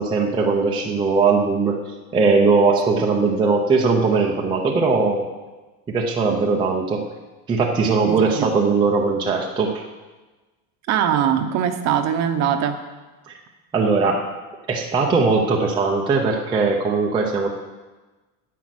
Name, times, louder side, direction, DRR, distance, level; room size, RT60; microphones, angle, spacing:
voice 1, 0.0-1.8 2.1-5.3 5.9-7.0 7.5-9.8 13.3-13.4 13.7-14.3 14.7-17.5, right 4 dB, 10° right, -1 dB, 0.6 m, -19 dB
voice 2, 8.1-8.5 10.9-12.8, right 9 dB, 35° right, 8 dB, 0.9 m, -21 dB
10.5 x 9.3 x 7.6 m, 1.2 s
cardioid pair, 180°, 48 cm